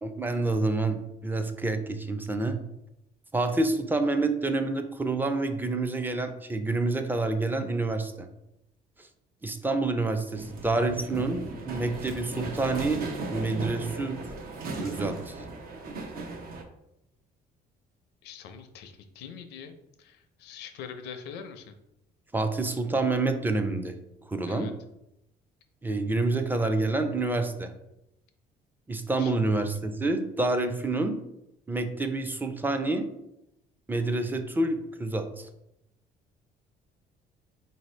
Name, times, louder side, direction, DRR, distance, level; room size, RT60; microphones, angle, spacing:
voice 1, 0.0-2.6 3.3-8.3 9.0-9.1 9.4-13.0 13.3-14.2 14.8-15.3 22.3-23.9 24.3-24.7 25.8-27.7 28.9-31.2 31.7-33.1 33.9-35.5, right 2 dB, 10° right, 6 dB, 0.4 m, -28 dB
sound 1, 10.3-16.6, right 2 dB, 60° right, 0.6 m, -37 dB
voice 2, 18.2-21.7 24.5-24.7 29.2-29.3, left 7 dB, 85° left, 8 dB, 0.5 m, -43 dB
4.2 x 2.7 x 3.1 m, 0.86 s
cardioid pair, 110°, 17 cm